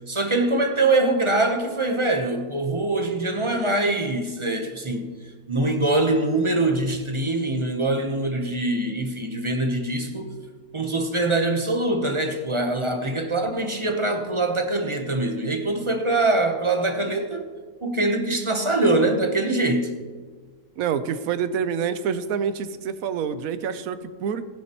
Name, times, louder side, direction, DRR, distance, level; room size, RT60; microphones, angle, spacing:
voice 1, 0.1-5.1 5.5-10.4 10.7-17.5 17.8-19.9, right 2 dB, 25° right, 0.7 m, -23 dB
voice 2, 20.8-24.5, right 7 dB, 70° right, 1.1 m, -27 dB
15.5 x 10.5 x 3.0 m
omnidirectional pair, 1.7 m